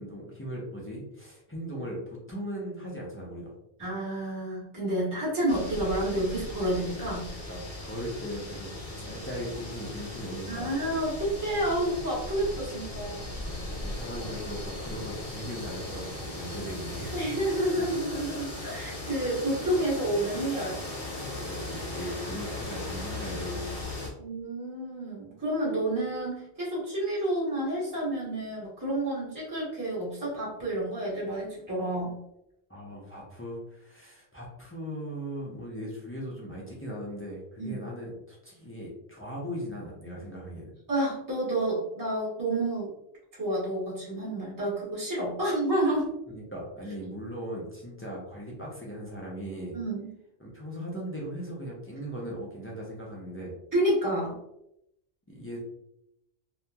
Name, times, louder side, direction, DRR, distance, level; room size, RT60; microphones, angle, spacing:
voice 1, 0.0-3.5 7.5-8.7 9.0-10.7 13.7-17.3 17.8-17.9 21.4-24.1 32.7-40.7 46.3-49.8 50.4-53.5 55.3-55.6, equal, 20° left, -4 dB, 0.4 m, -38 dB
voice 2, 3.8-7.3 10.5-13.4 17.1-20.8 24.2-32.1 37.6-37.8 40.9-42.9 43.4-46.1 49.7-50.1 53.7-54.4, right 1 dB, 20° right, -9 dB, 1.0 m, -29 dB
sound 1, 5.5-24.1, left 2 dB, 35° left, 0.8 m, -38 dB
2.9 x 2.4 x 2.2 m, 0.82 s
omnidirectional pair, 1.1 m